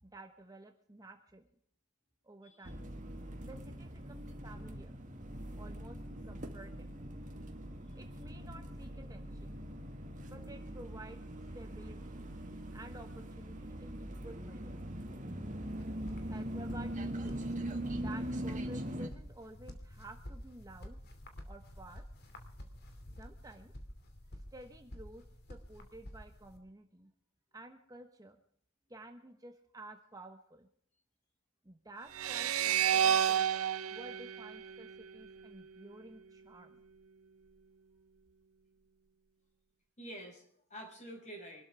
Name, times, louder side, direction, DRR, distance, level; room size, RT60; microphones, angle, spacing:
voice 1, 0.0-1.4 2.2-2.9 3.4-5.0 5.6-6.0 6.2-7.0 7.9-9.6 10.3-11.2 11.5-12.2 12.7-14.8 16.2-17.4 17.9-21.0 21.5-22.0 23.2-23.7 24.5-25.2 25.5-27.1 27.5-28.4 28.9-30.7 31.6-33.4 33.9-36.8, right 1 dB, 15° right, 5 dB, 1.1 m, -52 dB
sound 1, 2.7-19.1, right 1 dB, 35° right, 1.9 m, -42 dB
sound 2, 15.7-26.6, equal, 50° left, 2.7 m, -50 dB
sound 3, 32.1-35.4, right 9 dB, 90° right, 0.7 m, -31 dB
voice 2, 40.0-41.6, right 1 dB, 35° left, 1 dB, 6.0 m, -48 dB
25.5 x 12.5 x 3.5 m, 0.63 s
head